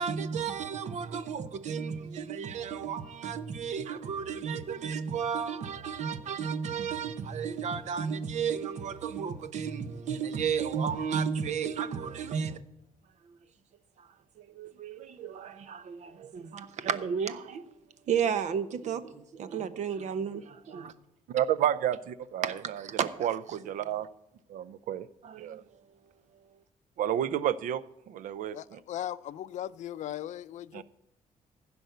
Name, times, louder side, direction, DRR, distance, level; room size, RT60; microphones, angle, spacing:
voice 1, 0.0-12.6 14.0-14.1 14.4-17.6 18.1-20.9 22.4-23.1 25.2-25.6, right 7 dB, 60° right, 0.9 m, -33 dB
voice 2, 21.3-22.9 23.2-24.1 24.5-25.1 25.4-25.6 27.0-28.8 30.7-30.8, right 10 dB, 85° right, 0.6 m, -31 dB
voice 3, 28.5-30.8, left 11 dB, 65° left, 0.4 m, -38 dB
15.5 x 5.3 x 7.9 m
cardioid pair, 150°, 13 cm